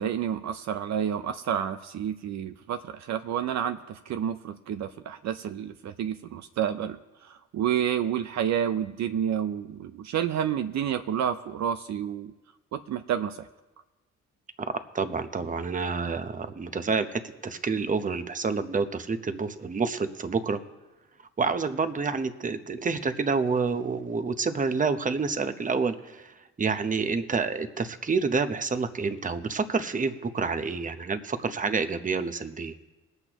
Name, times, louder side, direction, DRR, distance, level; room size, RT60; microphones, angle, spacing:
voice 1, 0.0-12.3 12.7-13.4, right 9 dB, 65° right, 9 dB, 0.6 m, -29 dB
voice 2, 14.9-20.6 21.4-26.3 26.6-32.7, right 4 dB, 25° right, 9 dB, 0.9 m, -28 dB
21.0 x 8.0 x 3.0 m, 1.1 s
cardioid pair, 90°, 30 cm